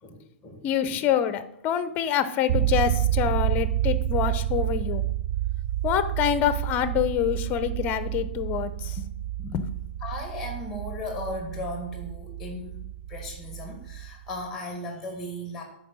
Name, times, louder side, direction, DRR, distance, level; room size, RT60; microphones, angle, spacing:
voice 1, 0.0-1.0 4.9-5.0 10.0-15.6, left 1 dB, 5° left, 2 dB, 1.9 m, -37 dB
voice 2, 0.6-5.1 5.8-9.1 9.4-9.8, left 9 dB, 30° left, 13 dB, 0.7 m, -26 dB
sound 1, 2.5-14.4, right 13 dB, 40° right, 0.4 m, -29 dB
9.2 x 4.7 x 6.7 m, 0.77 s
hypercardioid pair, 150°, 7 cm